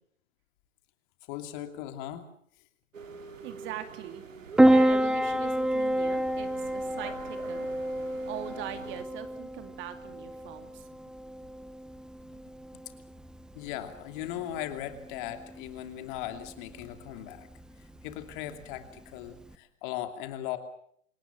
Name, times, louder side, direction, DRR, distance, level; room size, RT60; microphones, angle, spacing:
voice 1, 1.3-2.3 12.3-12.4 13.5-17.5 18.0-20.6, left 12 dB, 40° left, 7 dB, 2.9 m, -38 dB
sound 1, 2.9-9.0, right 5 dB, 80° right, 2.8 m, -46 dB
voice 2, 3.4-7.7 8.3-10.8, right 11 dB, 30° right, 8 dB, 2.7 m, -42 dB
Piano, 4.6-19.5, right 1 dB, ahead, 1.0 m, -29 dB
27.5 x 18.0 x 7.5 m, 0.66 s
hypercardioid pair, 120°, 39 cm